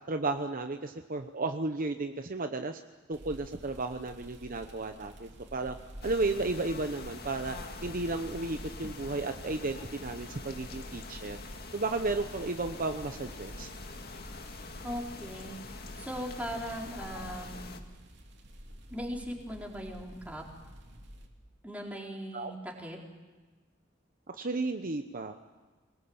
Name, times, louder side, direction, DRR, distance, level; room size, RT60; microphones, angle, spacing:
voice 1, 0.1-2.8 3.1-5.8 6.0-7.6 7.8-11.4 11.7-13.7 22.3-22.5 24.3-25.4, right 3 dB, 45° right, 6 dB, 1.0 m, -33 dB
sound 1, 3.1-21.3, equal, 60° right, 3.1 m, -50 dB
sound 2, 6.0-17.8, left 3 dB, 55° left, 2.0 m, -44 dB
voice 2, 14.8-15.6 16.0-17.7 18.9-20.5 21.6-23.0, equal, 5° right, -1 dB, 4.1 m, -39 dB
23.5 x 20.5 x 8.8 m, 1.3 s
head